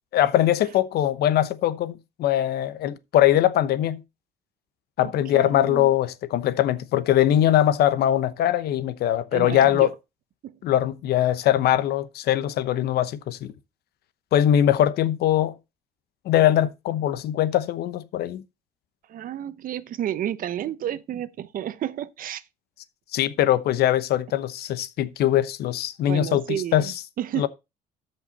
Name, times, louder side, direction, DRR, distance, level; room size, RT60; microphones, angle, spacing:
voice 1, 0.1-4.0 5.0-9.9 10.6-13.5 14.3-15.5 16.2-18.4 23.1-26.9 27.4-27.5, left 12 dB, 70° left, 0.9 m, -21 dB
voice 2, 5.0-5.9 9.3-9.9 10.4-10.5 19.1-22.4 26.1-27.5, right 11 dB, 55° right, 0.7 m, -31 dB
13.0 x 5.6 x 4.1 m
cardioid pair, 110°, 17 cm